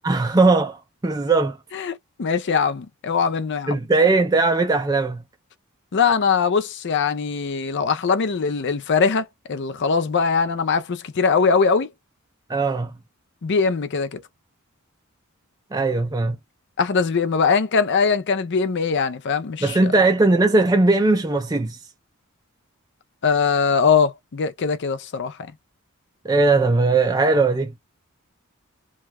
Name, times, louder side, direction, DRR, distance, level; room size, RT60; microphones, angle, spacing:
voice 1, 0.0-1.6 3.7-5.2 12.5-12.9 15.7-16.4 19.6-21.8 26.2-27.8, right 3 dB, 15° right, 0.4 m, -19 dB
voice 2, 1.7-3.8 5.9-11.9 13.4-14.2 16.8-19.9 23.2-25.5, left 5 dB, 55° left, 0.5 m, -21 dB
2.7 x 2.3 x 3.0 m
head